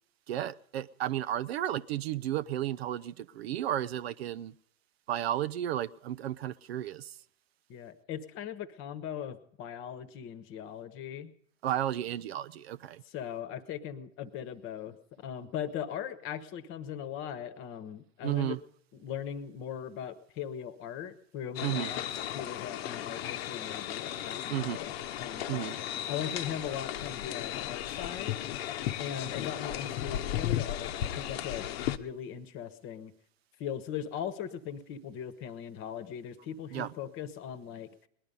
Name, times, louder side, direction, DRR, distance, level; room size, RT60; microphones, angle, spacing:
voice 1, 0.3-4.5 5.1-7.2 11.6-13.0 18.2-18.6 21.6-21.9 24.5-24.8 25.5-25.7 36.7-36.9, right 12 dB, 50° right, 0.5 m, -33 dB
voice 2, 7.7-11.3 13.0-18.6 18.9-22.0 22.3-25.8 26.1-28.4 29.0-33.1 33.6-37.9, left 9 dB, 30° left, 1.2 m, -39 dB
sound 1, 21.6-32.0, left 12 dB, 50° left, 1.0 m, -35 dB
19.5 x 11.0 x 5.3 m
hypercardioid pair, 115°, 40 cm